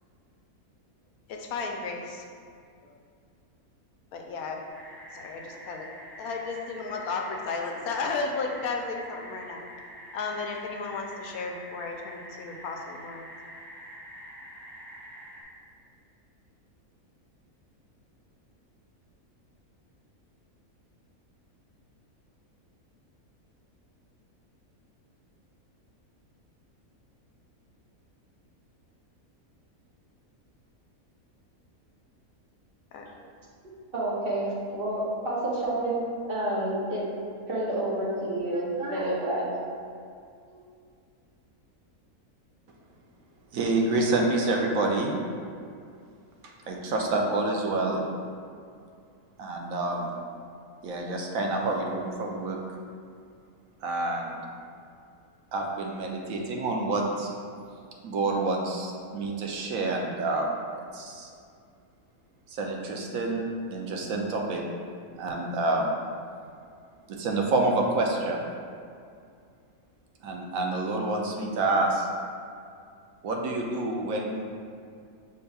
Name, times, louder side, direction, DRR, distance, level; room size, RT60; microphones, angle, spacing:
voice 1, 1.3-2.2 2.9-3.0 4.1-4.6 5.1-5.9 6.2-9.6 10.1-13.3 32.9-33.1, left 4 dB, 85° left, 2 dB, 1.1 m, -34 dB
sound 1, 4.7-15.4, equal, ahead, 0.9 m, -46 dB
voice 2, 33.6-37.1 37.5-39.5 40.5-40.6, right 1 dB, 45° right, -6 dB, 0.9 m, -29 dB
voice 3, 43.5-45.1 46.7-48.0 49.4-50.1 50.8-52.6 53.8-54.4 55.5-57.3 58.0-60.6 60.9-61.3 62.5-64.6 65.2-66.0 67.1-68.4 70.2-72.1 73.2-74.4, right 2 dB, 70° right, 0 dB, 1.0 m, -28 dB
6.5 x 3.5 x 2.3 m, 2.3 s
omnidirectional pair, 1.5 m